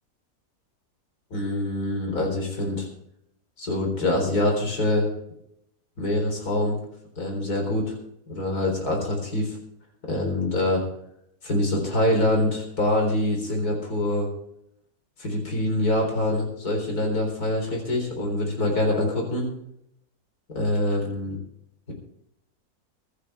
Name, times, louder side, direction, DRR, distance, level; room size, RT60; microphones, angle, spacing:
voice 1, 1.3-2.9 3.6-5.1 6.0-6.8 7.2-7.9 8.3-9.6 10.1-10.8 11.4-14.3 15.2-19.5 20.5-21.4, left 1 dB, 75° left, 1 dB, 4.6 m, -25 dB
24.5 x 9.8 x 3.5 m, 0.75 s
omnidirectional pair, 1.6 m